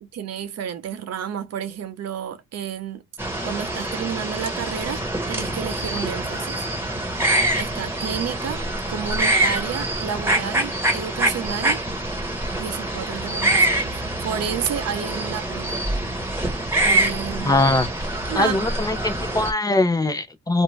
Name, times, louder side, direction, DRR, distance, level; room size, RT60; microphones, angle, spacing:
voice 1, 0.0-3.0 3.4-6.7 7.6-11.8 12.6-15.8 16.8-17.6 18.3-18.7, right 8 dB, 60° right, 0.7 m, -31 dB
sound 1, 3.2-19.5, right 1 dB, 10° right, 1.1 m, -25 dB
voice 2, 17.4-17.9 18.4-20.6, left 2 dB, 10° left, 0.6 m, -21 dB
2.6 x 2.1 x 3.1 m
cardioid pair, 90°, 30 cm